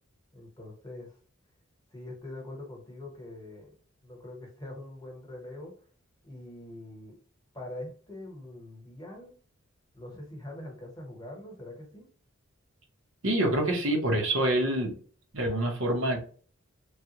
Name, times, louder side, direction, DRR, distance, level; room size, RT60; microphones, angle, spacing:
voice 1, 0.3-1.2 1.9-3.7 4.0-5.7 6.2-7.2 7.5-9.3 9.9-12.1, left 1 dB, 20° left, 0 dB, 1.1 m, -43 dB
voice 2, 13.2-14.9 15.3-16.2, right 1 dB, 70° right, 1 dB, 1.0 m, -26 dB
3.3 x 2.4 x 2.9 m, 0.43 s
head